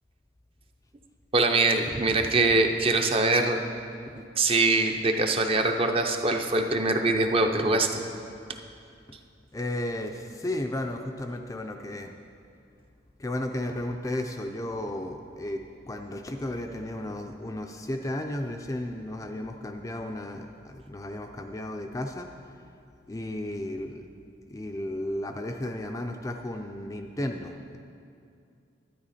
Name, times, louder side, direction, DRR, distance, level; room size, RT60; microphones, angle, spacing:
voice 1, 1.3-3.6 4.4-8.0, right 2 dB, 30° right, 5 dB, 0.6 m, -23 dB
voice 2, 9.5-12.2 13.2-22.3 23.1-24.1 24.5-27.8, left 1 dB, 15° left, 4 dB, 0.4 m, -34 dB
11.5 x 9.6 x 4.2 m, 2.4 s
head